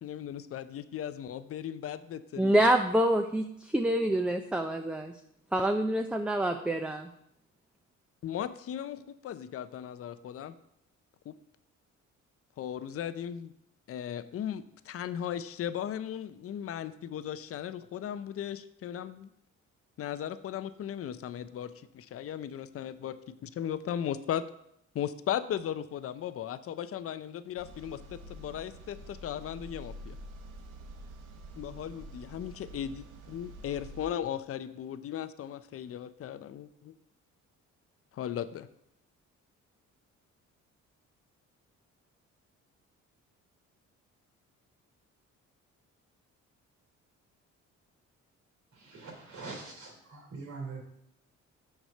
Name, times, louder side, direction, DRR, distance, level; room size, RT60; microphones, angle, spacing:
voice 1, 0.0-2.5 8.2-10.5 11.3-11.4 12.6-13.5 13.9-19.3 20.0-23.2 23.4-24.4 24.9-30.2 31.6-36.9 38.1-38.7, left 10 dB, 50° left, 13 dB, 0.6 m, -37 dB
voice 2, 2.4-5.1 5.5-7.1, right 1 dB, 5° right, 5 dB, 0.5 m, -26 dB
sound 1, 27.6-34.0, right 1 dB, 90° right, 1.0 m, -47 dB
voice 3, 48.7-50.8, right 4 dB, 70° right, 0 dB, 3.0 m, -43 dB
6.4 x 4.8 x 6.5 m, 0.76 s
cardioid pair, 90°, 30 cm